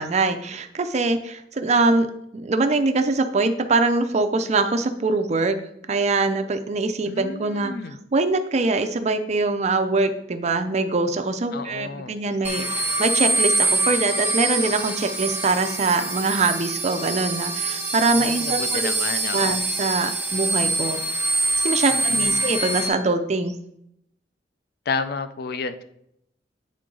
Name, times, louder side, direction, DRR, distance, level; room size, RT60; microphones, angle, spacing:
voice 1, 0.0-2.1 2.3-5.6 5.9-7.7 8.1-18.9 19.3-21.0 21.6-23.5, right 3 dB, 40° right, 8 dB, 0.5 m, -23 dB
voice 2, 7.1-8.0 11.5-12.2 18.2-19.6 21.9-22.5 24.9-25.8, left 4 dB, 60° left, 10 dB, 0.5 m, -31 dB
sound 1, 12.4-22.9, right 3 dB, 10° right, 0.9 m, -25 dB
8.6 x 3.8 x 3.8 m, 0.76 s
head